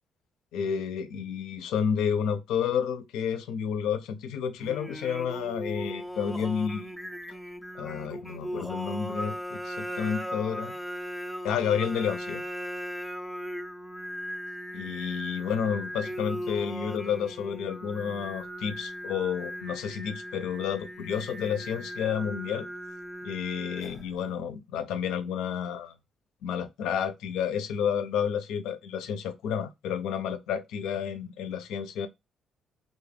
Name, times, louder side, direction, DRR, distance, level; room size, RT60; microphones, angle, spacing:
voice 1, 0.5-6.9 7.7-10.7 11.4-12.4 14.7-22.7 23.2-25.9 26.4-32.1, left 7 dB, 90° left, 0.4 m, -30 dB
Singing, 4.6-24.2, equal, ahead, 0.4 m, -38 dB
2.3 x 2.1 x 3.3 m
cardioid pair, 90°, 0 cm